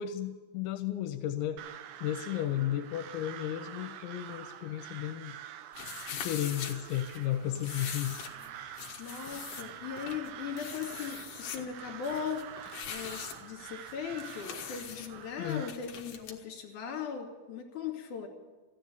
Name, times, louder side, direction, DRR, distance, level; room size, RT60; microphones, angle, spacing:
voice 1, 0.0-1.6 2.0-5.3 6.1-8.2 15.4-15.7, left 11 dB, 85° left, 8 dB, 3.0 m, -34 dB
Crow, 1.6-15.7, right 11 dB, 85° right, 2.0 m, -46 dB
sound 1, 5.7-16.4, left 8 dB, 65° left, 2.3 m, -43 dB
voice 2, 9.0-18.3, left 7 dB, 50° left, 1 dB, 3.5 m, -39 dB
14.5 x 10.5 x 9.5 m, 1.3 s
omnidirectional pair, 5.3 m